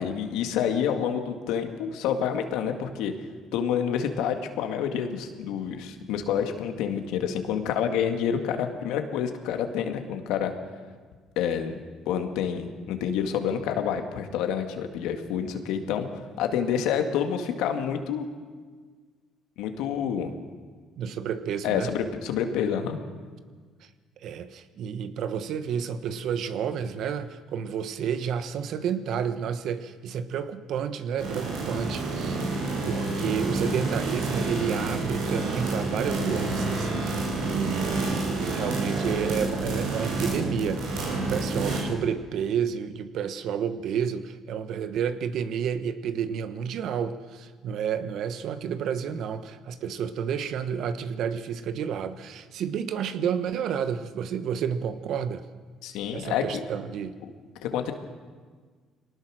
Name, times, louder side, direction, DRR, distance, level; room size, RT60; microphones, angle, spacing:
voice 1, 0.0-3.1 3.5-10.5 11.4-11.7 12.1-16.1 16.4-18.3 19.6-20.3 21.6-23.0 55.8-56.6 57.6-57.9, left 8 dB, 85° left, 6 dB, 2.0 m, -28 dB
voice 2, 21.0-21.9 24.2-32.6 32.8-55.4 56.1-57.2, right 7 dB, 65° right, 11 dB, 1.2 m, -30 dB
sound 1, 31.2-41.8, right 2 dB, 85° right, 6.1 m, -29 dB
23.0 x 18.5 x 6.4 m, 1.5 s
cardioid pair, 90°, 0 cm